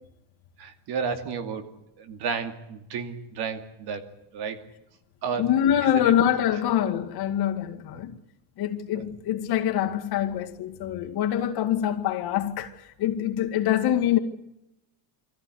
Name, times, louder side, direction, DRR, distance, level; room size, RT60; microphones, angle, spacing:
voice 1, 0.6-1.7 2.0-4.0 4.3-4.6 5.2-5.5 5.8-6.2 8.9-9.0, right 6 dB, 60° right, 2.5 m, -32 dB
voice 2, 5.4-8.2 8.6-14.2, left 10 dB, 55° left, 2.3 m, -25 dB
23.5 x 15.0 x 9.8 m
cardioid pair, 135°, 44 cm